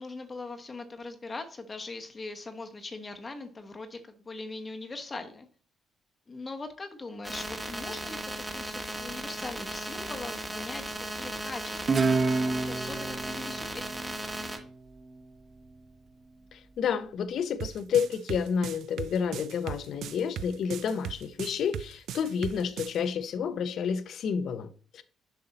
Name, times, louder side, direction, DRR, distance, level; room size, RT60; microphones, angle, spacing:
voice 1, 0.0-5.5 6.3-8.2 8.5-10.8 11.1-13.8, left 3 dB, 30° left, 0.9 m, -41 dB
sound 1, 7.2-14.6, right 1 dB, 15° right, 1.3 m, -36 dB
Guitar, 11.9-15.1, right 4 dB, 40° right, 0.7 m, -29 dB
voice 2, 16.5-25.0, left 7 dB, 70° left, 0.7 m, -30 dB
sound 2, 17.6-23.0, right 10 dB, 80° right, 0.4 m, -38 dB
6.9 x 5.5 x 4.0 m
cardioid pair, 90°, 0 cm